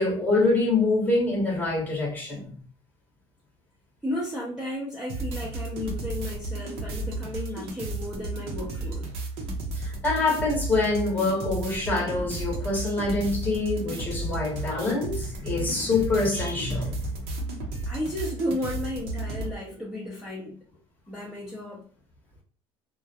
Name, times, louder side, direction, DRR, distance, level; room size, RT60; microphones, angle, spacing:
voice 1, 0.0-2.5 9.7-17.0, left 3 dB, 15° left, 0.8 m, -25 dB
voice 2, 4.0-9.1 17.9-20.6 21.1-21.8, left 1 dB, 5° right, 0.5 m, -33 dB
sound 1, 5.1-19.5, right 2 dB, 60° right, 0.6 m, -33 dB
2.3 x 2.0 x 2.7 m
cardioid pair, 145°, 11 cm